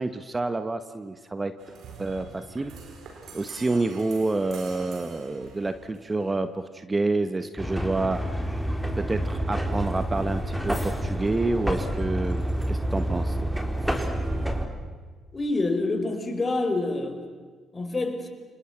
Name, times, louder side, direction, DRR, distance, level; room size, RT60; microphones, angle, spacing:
voice 1, 0.0-1.5 2.0-2.7 3.3-8.2 8.9-12.4 12.7-13.5, right 2 dB, 25° right, 10 dB, 1.5 m, -28 dB
sound 1, 1.6-6.5, right 4 dB, 65° right, 5.0 m, -45 dB
sound 2, 7.6-14.7, right 1 dB, 5° right, 4.0 m, -28 dB
voice 2, 15.3-17.2 17.7-18.3, left 2 dB, 30° left, 6 dB, 5.0 m, -27 dB
29.5 x 27.0 x 6.1 m, 1.5 s
hypercardioid pair, 45°, 0 cm